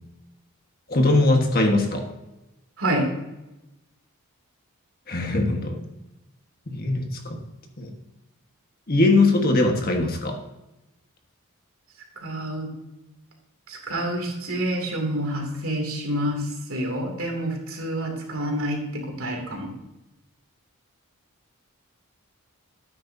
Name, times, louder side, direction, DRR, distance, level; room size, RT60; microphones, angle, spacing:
voice 1, 0.9-2.1 5.1-5.8 6.7-7.4 7.8-7.9 8.9-10.4, left 2 dB, 40° left, 3 dB, 1.4 m, -21 dB
voice 2, 12.2-12.7 13.7-16.4 16.7-19.7, right 1 dB, 70° right, 2 dB, 2.7 m, -28 dB
12.0 x 9.2 x 2.7 m, 0.95 s
head